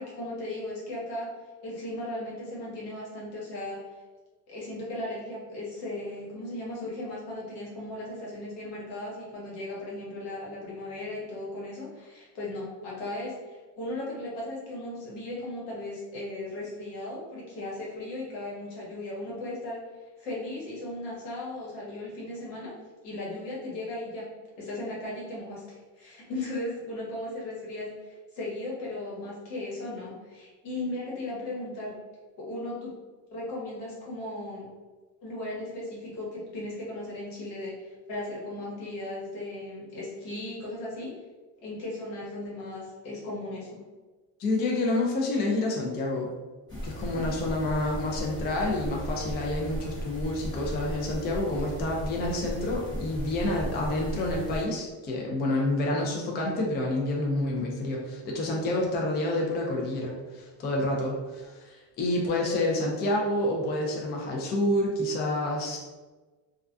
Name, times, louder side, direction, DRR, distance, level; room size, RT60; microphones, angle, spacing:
voice 1, 0.0-1.3 1.6-3.8 4.5-19.8 20.2-22.7 23.0-24.3 24.6-32.0 32.4-32.9 33.3-34.7 35.2-41.2 41.6-43.8 47.2-47.3 62.2-62.3, left 1 dB, 80° left, -4 dB, 1.1 m, -37 dB
voice 2, 44.4-46.3 46.7-65.8, left 1 dB, 25° left, -1 dB, 0.4 m, -28 dB
sound 1, 46.7-54.6, equal, 10° left, 1.0 m, -36 dB
2.3 x 2.2 x 2.4 m, 1.2 s
cardioid pair, 120°, 41 cm